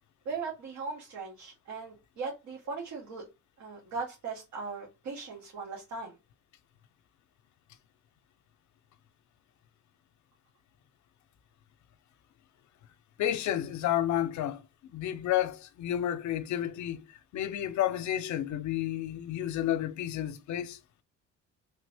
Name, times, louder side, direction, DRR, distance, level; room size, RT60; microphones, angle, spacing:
voice 1, 0.2-3.3 3.6-6.1, right 4 dB, 70° right, 1.2 m, -38 dB
voice 2, 13.2-17.0 17.3-20.8, left 11 dB, 70° left, 0.6 m, -31 dB
3.2 x 2.5 x 3.3 m
cardioid pair, 90°, 30 cm